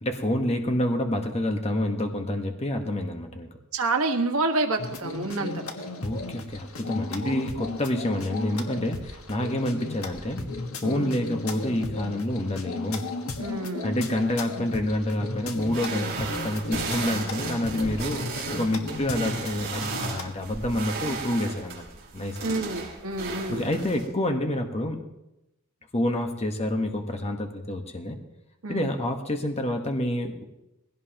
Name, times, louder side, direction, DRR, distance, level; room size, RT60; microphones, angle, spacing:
voice 1, 0.0-3.5 6.0-10.5 10.8-13.1 13.8-21.8 22.1-22.6 23.5-25.0 25.9-28.2 28.7-30.4, left 1 dB, 30° left, 4 dB, 1.3 m, -28 dB
voice 2, 3.7-5.7 10.8-11.1 13.4-14.0 22.4-23.7 28.6-28.9, right 2 dB, 90° right, 4 dB, 1.6 m, -28 dB
sound 1, 4.8-20.3, left 3 dB, 90° left, 1.4 m, -35 dB
sound 2, 15.6-24.1, right 4 dB, 45° right, 3.8 m, -35 dB
20.5 x 16.5 x 3.0 m, 0.91 s
head